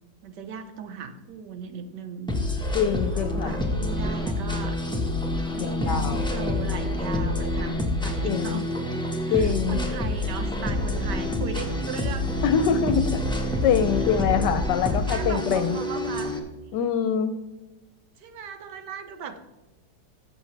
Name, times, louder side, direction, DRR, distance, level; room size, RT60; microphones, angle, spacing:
voice 1, 0.2-2.3 3.1-4.8 5.5-8.7 9.2-12.3 14.8-16.4 18.2-19.4, right 6 dB, 75° right, 9 dB, 1.5 m, -37 dB
sound 1, 2.3-16.4, left 1 dB, 5° left, 0.9 m, -27 dB
voice 2, 2.7-3.6 5.6-6.2 8.2-8.6 9.3-9.8 12.4-13.2 13.6-15.8 16.7-17.3, left 7 dB, 80° left, 10 dB, 1.2 m, -24 dB
14.0 x 7.3 x 3.3 m, 1.1 s
omnidirectional pair, 1.9 m